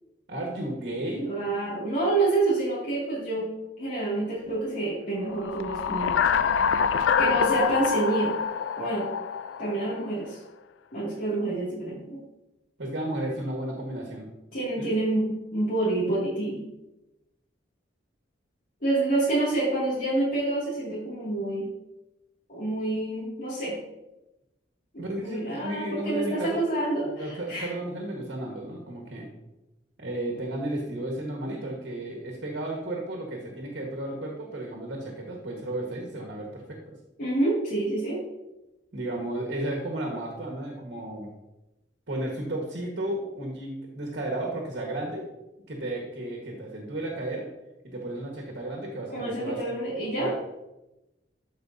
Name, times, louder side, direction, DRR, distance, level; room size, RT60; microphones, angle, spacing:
voice 1, 0.3-1.3 12.8-14.3 14.8-14.9 25.0-26.7 27.2-29.3 30.0-37.0 38.9-41.3 42.1-45.3 45.7-47.5 47.9-49.6 50.2-50.4, right 1 dB, 65° right, -1 dB, 1.5 m, -33 dB
voice 2, 1.3-3.5 3.8-6.1 7.2-8.3 8.8-9.1 9.6-10.4 10.9-12.2 14.5-16.6 18.8-21.7 22.5-23.7 24.9-27.7 37.2-38.2 49.1-50.3, right 2 dB, 50° left, -9 dB, 2.3 m, -27 dB
sound 1, 5.4-10.1, left 6 dB, 85° left, 0.4 m, -26 dB
12.5 x 5.0 x 2.7 m, 0.96 s
head